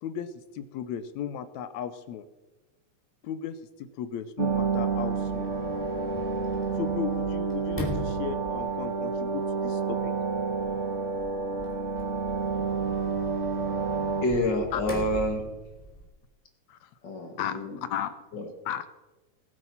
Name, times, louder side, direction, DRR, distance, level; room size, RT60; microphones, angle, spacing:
voice 1, 0.0-2.3 3.2-5.5 6.8-10.1 14.7-14.8 16.7-16.9 17.4-18.2 18.7-18.9, left 9 dB, 75° left, 12 dB, 1.8 m, -35 dB
sound 1, 4.4-14.3, right 5 dB, 35° right, 1.2 m, -29 dB
Sliding door, 4.5-16.0, left 1 dB, 5° left, 3.6 m, -41 dB
voice 2, 14.2-15.4 17.0-17.9 18.3-18.5, left 1 dB, 40° left, 3 dB, 2.2 m, -28 dB
20.0 x 7.7 x 5.7 m, 1.1 s
omnidirectional pair, 3.7 m